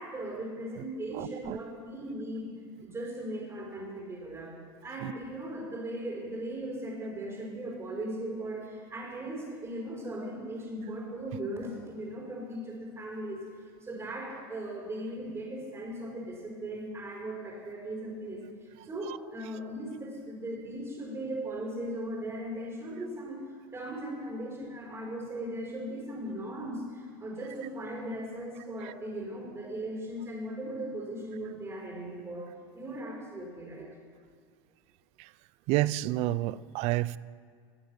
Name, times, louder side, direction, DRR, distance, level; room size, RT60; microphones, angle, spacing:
voice 1, 0.0-2.5 2.8-4.5 4.8-13.4 13.8-23.4 23.7-33.9, right 1 dB, 20° right, 5.0 m, -38 dB
voice 2, 1.1-1.6 5.0-5.1 19.1-19.2 28.8-28.9 35.2-35.3 35.7-37.2, right 16 dB, 55° right, 0.5 m, -30 dB
17.5 x 9.1 x 7.2 m
hypercardioid pair, 105°, 13 cm